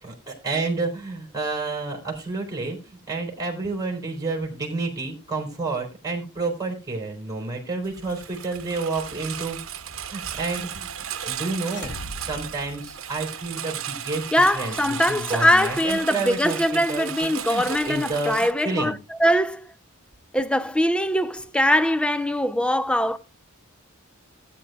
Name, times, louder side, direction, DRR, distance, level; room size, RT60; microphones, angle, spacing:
voice 1, 0.0-9.6 10.1-10.9 11.2-19.0, right 3 dB, 20° right, 4.0 m, -30 dB
Engine, 7.8-18.5, right 9 dB, 70° right, 1.0 m, -35 dB
sound 1, 11.6-13.6, left 1 dB, 55° left, 1.1 m, -40 dB
voice 2, 14.3-19.7 20.3-23.2, equal, 5° left, 0.5 m, -22 dB
18.5 x 9.2 x 2.3 m
head